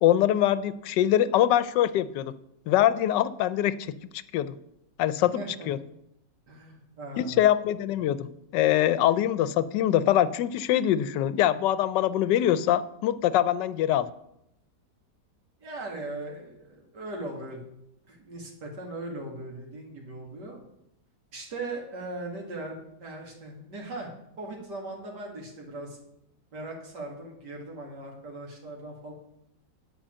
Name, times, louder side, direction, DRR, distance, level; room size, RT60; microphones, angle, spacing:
voice 1, 0.0-2.3 2.7-4.0 4.3-4.6 5.0-5.4 5.7-5.8 7.2-8.3 8.5-14.1, left 12 dB, 80° left, 16 dB, 1.2 m, -23 dB
voice 2, 5.2-5.7 6.5-7.4 15.6-17.6 18.1-20.6 21.3-24.1 24.4-26.0 26.5-29.1, right 2 dB, 70° right, 0 dB, 2.9 m, -39 dB
10.0 x 5.7 x 7.5 m, 0.80 s
omnidirectional pair, 1.9 m